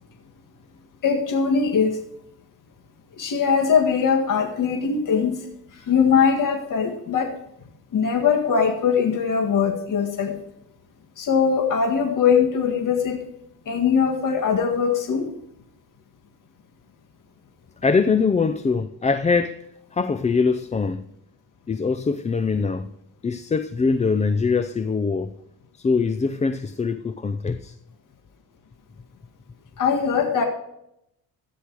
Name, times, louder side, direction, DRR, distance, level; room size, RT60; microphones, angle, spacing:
voice 1, 1.0-2.0 3.2-7.3 7.9-10.3 11.2-13.2 13.7-15.3 29.8-30.4, left 6 dB, 55° left, 1.9 m, -21 dB
voice 2, 17.8-19.7 19.9-21.0 21.7-22.9 23.2-25.3 25.8-27.7, left 4 dB, 20° left, 0.4 m, -23 dB
13.5 x 9.6 x 4.8 m
cardioid pair, 115°, 38 cm